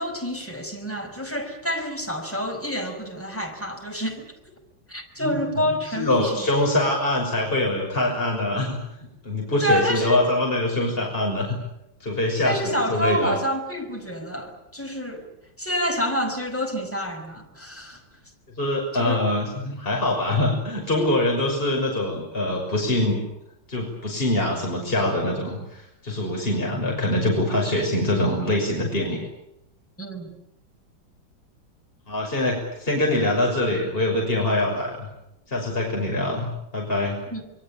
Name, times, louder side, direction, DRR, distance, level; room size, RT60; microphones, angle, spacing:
voice 1, 0.0-4.3 4.9-6.5 9.6-10.2 12.4-15.3 15.6-18.0 18.9-19.2 30.0-30.3 37.3-37.4, equal, 5° left, 3 dB, 5.6 m, -28 dB
voice 2, 5.9-8.8 9.2-11.6 12.0-13.3 18.6-23.2 23.7-29.2 32.1-35.1 35.5-37.2, left 1 dB, 25° left, 0 dB, 6.4 m, -24 dB
26.5 x 23.5 x 8.7 m, 0.84 s
omnidirectional pair, 2.1 m